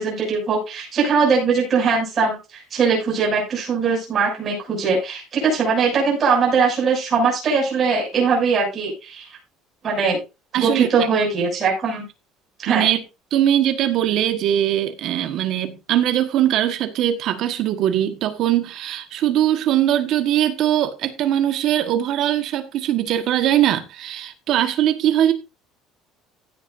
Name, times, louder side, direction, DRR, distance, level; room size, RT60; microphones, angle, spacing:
voice 1, 0.0-9.3 9.8-10.2 10.5-12.0 12.6-12.8, right 5 dB, 30° right, 6.8 m, -21 dB
voice 2, 10.5-10.9 12.7-13.0 13.3-25.3, right 11 dB, 50° right, 1.4 m, -21 dB
15.5 x 8.4 x 2.6 m
cardioid pair, 165°, 0 cm